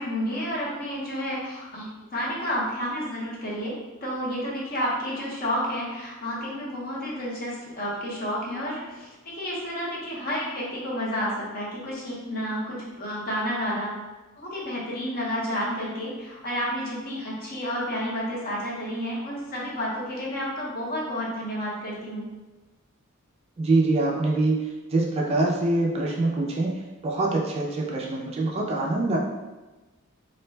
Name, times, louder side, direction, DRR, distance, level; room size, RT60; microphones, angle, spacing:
voice 1, 0.0-3.7 4.0-13.9 14.4-22.3, equal, 45° left, -5 dB, 0.8 m, -30 dB
voice 2, 23.6-24.6 24.9-26.8 27.0-29.2, right 2 dB, 30° right, -2 dB, 0.3 m, -24 dB
2.5 x 2.1 x 3.2 m, 1.2 s
head